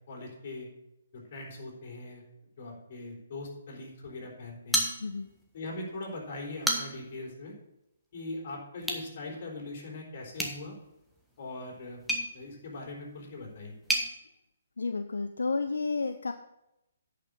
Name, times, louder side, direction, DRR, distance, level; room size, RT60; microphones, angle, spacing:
voice 1, 0.1-0.7 1.1-2.2 2.6-4.8 5.5-7.5 8.1-10.8 11.4-12.0 12.3-13.7, left 2 dB, 45° left, -1 dB, 4.0 m, -41 dB
sound 1, 4.7-5.5 5.8-5.9 6.4-7.2 8.8-9.1 10.3-14.1, right 1 dB, ahead, 1.4 m, -33 dB
voice 2, 14.8-16.3, left 4 dB, 75° left, 8 dB, 0.6 m, -31 dB
10.0 x 5.8 x 6.7 m, 0.88 s
figure-of-eight pair, 135°, 0 cm